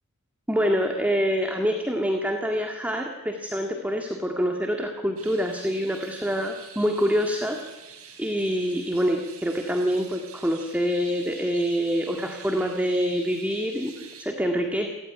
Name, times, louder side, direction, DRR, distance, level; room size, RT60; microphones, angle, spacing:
voice 1, 0.5-7.6 8.2-14.9, equal, 5° right, 3 dB, 1.9 m, -26 dB
sound 1, 5.2-14.3, right 7 dB, 85° right, 5.0 m, -47 dB
28.0 x 15.5 x 9.8 m, 1.1 s
head